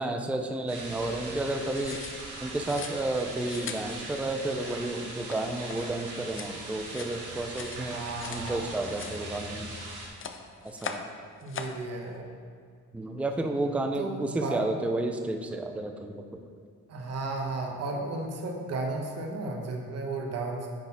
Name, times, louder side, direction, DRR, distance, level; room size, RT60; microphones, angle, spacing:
voice 1, 0.0-2.0 2.4-8.0 8.3-9.7 10.6-11.1 12.9-16.4, right 2 dB, 5° right, 5 dB, 0.5 m, -31 dB
sound 1, 0.7-10.1, right 2 dB, 80° right, 1.9 m, -41 dB
sound 2, 1.6-8.5 8.8-9.8 10.0-11.1 11.4-11.8, left 6 dB, 40° left, 0.6 m, -42 dB
voice 2, 7.8-8.6 11.4-12.2 14.0-14.6 16.9-20.7, right 2 dB, 55° right, 1 dB, 1.2 m, -34 dB
9.8 x 4.0 x 4.2 m, 2.1 s
cardioid pair, 90°, 30 cm